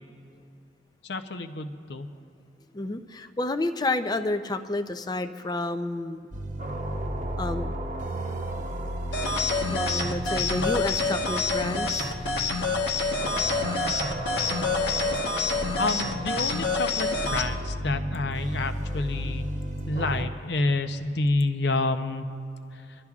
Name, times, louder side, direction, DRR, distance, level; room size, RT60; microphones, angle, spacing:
voice 1, 1.0-2.1 15.8-19.5 19.9-22.3 22.7-22.8, left 2 dB, 70° left, 8 dB, 0.7 m, -28 dB
voice 2, 2.7-6.3 7.4-7.7 9.7-12.1, left 2 dB, 20° left, 9 dB, 0.4 m, -30 dB
sound 1, 6.3-20.3, right 1 dB, 45° right, 0.9 m, -34 dB
sound 2, 9.1-17.5, left 4 dB, 85° left, 1.2 m, -27 dB
28.0 x 12.0 x 2.4 m, 2.5 s
head